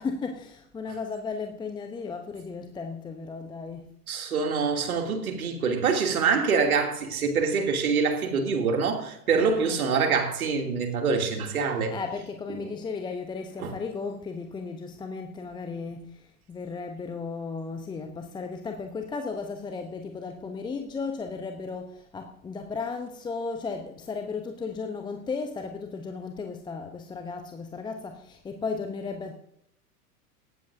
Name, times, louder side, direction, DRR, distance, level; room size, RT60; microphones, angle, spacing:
voice 1, 0.0-3.9 6.2-6.4 9.4-9.8 11.6-29.3, left 4 dB, 10° left, 0.7 m, -35 dB
voice 2, 4.1-11.9 13.6-13.7, right 5 dB, 65° right, 2.8 m, -25 dB
18.0 x 14.0 x 2.6 m
figure-of-eight pair, 95°, 47 cm